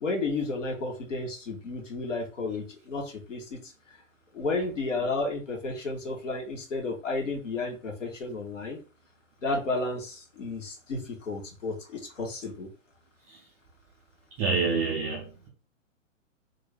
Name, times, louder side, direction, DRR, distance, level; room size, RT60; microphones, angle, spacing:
voice 1, 0.0-3.7 4.3-8.8 9.4-12.7, left 3 dB, 70° left, 1.6 m, -32 dB
voice 2, 14.4-15.5, right 4 dB, 10° right, 0.3 m, -27 dB
3.8 x 2.7 x 3.4 m
figure-of-eight pair, 110°, 39 cm